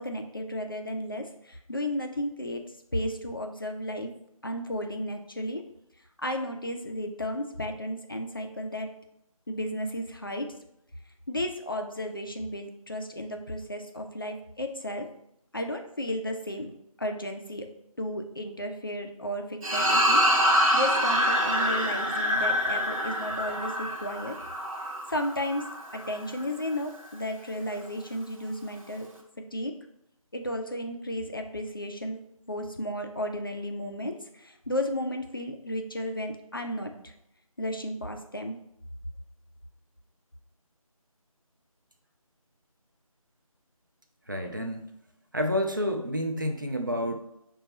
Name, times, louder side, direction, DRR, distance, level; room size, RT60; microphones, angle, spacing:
voice 1, 0.0-2.6 2.9-4.1 4.4-5.6 6.2-8.9 9.5-10.5 11.3-15.1 15.5-16.7 17.0-17.7 18.0-20.2 20.7-24.4 25.1-25.6 25.9-29.1 29.5-29.7 30.3-32.2 32.5-37.1 37.6-38.6, left 1 dB, 40° left, 4 dB, 0.4 m, -33 dB
sound 1, 19.6-26.2, equal, 65° right, 0.8 m, -26 dB
voice 2, 44.3-44.9 45.3-47.2, equal, 35° right, 4 dB, 0.4 m, -29 dB
5.7 x 2.2 x 3.0 m, 0.78 s
figure-of-eight pair, 170°, 19 cm